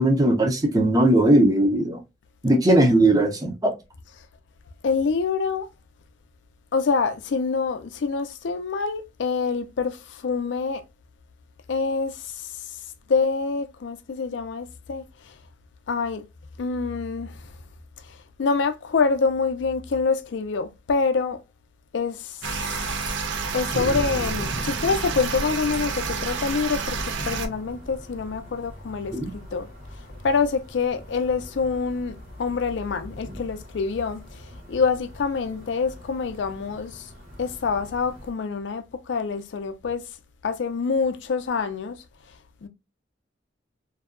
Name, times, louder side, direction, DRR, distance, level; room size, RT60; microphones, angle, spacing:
voice 1, 0.0-2.0 2.4-3.7 29.1-29.3, right 1 dB, 20° right, 0.6 m, -19 dB
voice 2, 4.8-5.7 6.7-10.8 11.7-12.6 13.1-15.4 15.9-16.2 16.6-17.5 18.0-21.4 21.9-22.4 23.5-27.0 27.2-29.2 29.5-29.7 30.2-37.1 37.4-40.0 40.4-42.0 42.6-42.7, left 4 dB, 70° left, 0.4 m, -26 dB
sound 1, 22.4-27.5, right 5 dB, 75° right, 0.5 m, -29 dB
sound 2, 23.7-38.3, equal, 50° right, 1.0 m, -39 dB
2.6 x 2.2 x 2.3 m
head